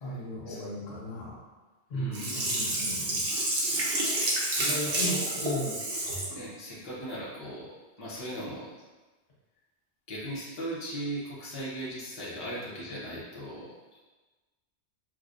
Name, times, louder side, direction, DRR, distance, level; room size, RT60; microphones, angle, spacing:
voice 1, 0.0-1.4 1.9-3.3 4.6-5.8, equal, 65° left, -7 dB, 1.2 m, -36 dB
voice 2, 1.9-2.4 4.6-5.0 6.3-8.7 10.1-14.0, right 1 dB, 35° left, -7 dB, 0.8 m, -38 dB
Sink (filling or washing), 2.1-6.3 6.8-6.9, right 1 dB, 60° right, 0.9 m, -29 dB
4.7 x 2.2 x 2.5 m, 1.2 s
omnidirectional pair, 1.1 m